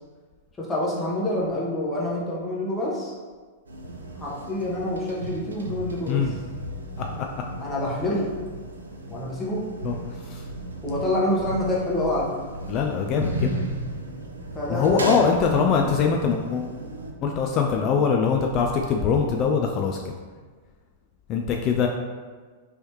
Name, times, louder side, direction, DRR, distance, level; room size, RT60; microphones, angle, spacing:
voice 1, 0.6-3.1 4.2-6.3 7.6-8.3 9.1-9.7 10.8-12.4 14.5-15.2 17.3-17.5, left 1 dB, 20° left, -5 dB, 1.0 m, -27 dB
sound 1, 3.7-17.1, right 1 dB, 80° right, 0.4 m, -35 dB
voice 2, 12.7-13.5 14.7-16.7 17.2-20.0 21.3-21.9, left 6 dB, 35° left, 2 dB, 0.3 m, -22 dB
3.2 x 3.0 x 3.0 m, 1.4 s
figure-of-eight pair, 100°, 0 cm